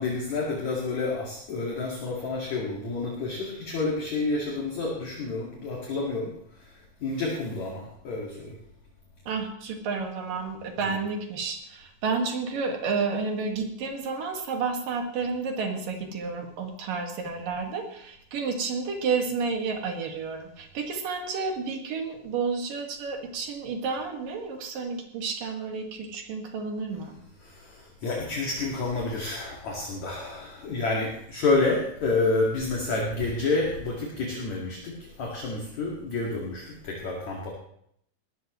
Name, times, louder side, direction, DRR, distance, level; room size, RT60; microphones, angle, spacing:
voice 1, 0.0-6.3 6.6-6.7 7.0-8.5 10.8-11.0 27.4-37.5, left 3 dB, 50° left, -2 dB, 3.1 m, -29 dB
voice 2, 9.3-27.2, right 4 dB, 60° right, 3 dB, 3.3 m, -31 dB
19.5 x 14.0 x 3.1 m, 0.71 s
omnidirectional pair, 4.8 m